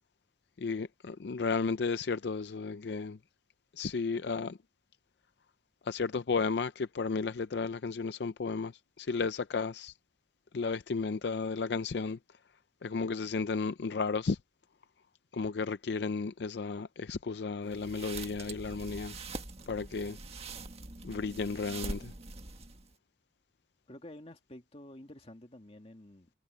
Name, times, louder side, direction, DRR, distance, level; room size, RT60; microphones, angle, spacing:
voice 1, 0.6-3.2 3.8-4.6 5.8-9.9 10.5-12.2 12.8-14.4 15.3-19.1 19.7-20.2 21.0-22.1, left 4 dB, 70° left, 0.5 m, -33 dB
sound 1, 17.7-22.9, right 3 dB, 35° right, 1.6 m, -43 dB
voice 2, 23.9-26.3, left 1 dB, 35° left, 2.1 m, -50 dB
head